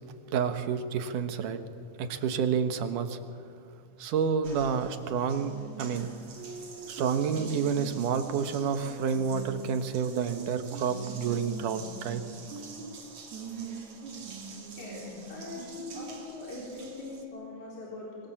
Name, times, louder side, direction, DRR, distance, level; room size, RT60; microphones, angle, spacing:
voice 1, 0.3-1.6 2.0-3.2 4.0-6.1 6.9-12.2, right 7 dB, 90° right, 8 dB, 2.9 m, -29 dB
Water tap faucet, 4.4-17.2, right 4 dB, 65° right, 3.8 m, -43 dB
voice 2, 14.8-18.3, left 2 dB, 65° left, -5 dB, 5.5 m, -42 dB
26.0 x 24.0 x 7.3 m, 2.3 s
omnidirectional pair, 3.5 m